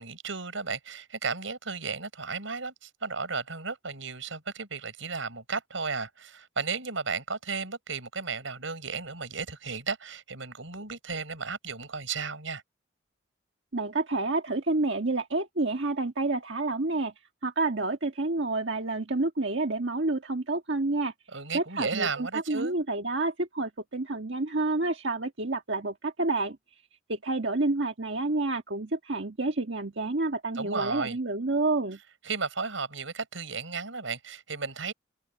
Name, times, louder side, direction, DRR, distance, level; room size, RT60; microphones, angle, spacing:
voice 1, 0.0-12.6 21.3-22.7 30.6-31.2 32.2-34.9, right 4 dB, 85° right, 5.4 m, -34 dB
voice 2, 13.7-17.1 17.4-21.1 21.5-26.8 27.1-32.0, right 2 dB, 65° right, 1.5 m, -29 dB
head